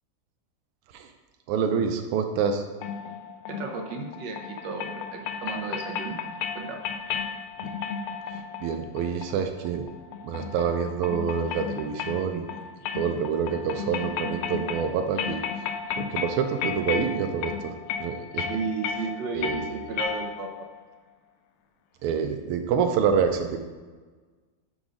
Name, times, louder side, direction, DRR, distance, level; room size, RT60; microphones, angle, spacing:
voice 1, 1.5-2.6 7.6-8.0 8.3-9.8 10.2-12.5 12.9-15.6 16.0-18.5 19.3-19.8 22.0-23.6, right 6 dB, 85° right, 5 dB, 1.5 m, -27 dB
sound 1, 2.8-20.7, left 7 dB, 80° left, 1.4 m, -34 dB
voice 2, 3.5-6.2 6.5-6.8 18.5-20.5, right 4 dB, 65° right, 2 dB, 1.2 m, -34 dB
7.2 x 3.8 x 4.9 m, 1.4 s
omnidirectional pair, 2.4 m